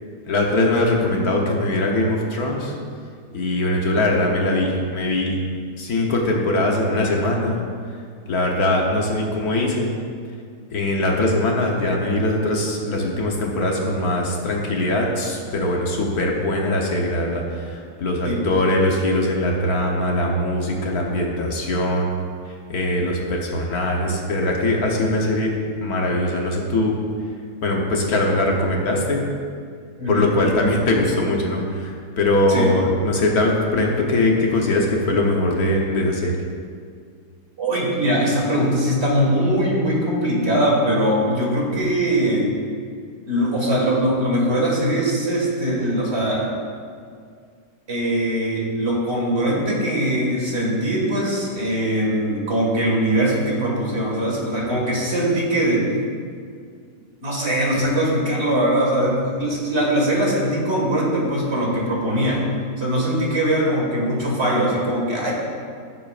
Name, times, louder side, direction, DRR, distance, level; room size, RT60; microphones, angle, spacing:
voice 1, 0.3-2.7 3.3-5.3 5.8-7.6 8.3-9.9 10.7-22.1 22.7-25.5 25.8-26.9 27.6-29.2 30.1-36.3, left 1 dB, 65° left, 0 dB, 1.6 m, -21 dB
voice 2, 30.0-30.3 32.5-32.7 37.6-42.5 43.2-46.5 47.9-55.9 57.2-62.5 62.8-65.3, right 1 dB, 40° right, -3 dB, 2.2 m, -21 dB
15.5 x 7.8 x 2.5 m, 2.1 s
omnidirectional pair, 1.7 m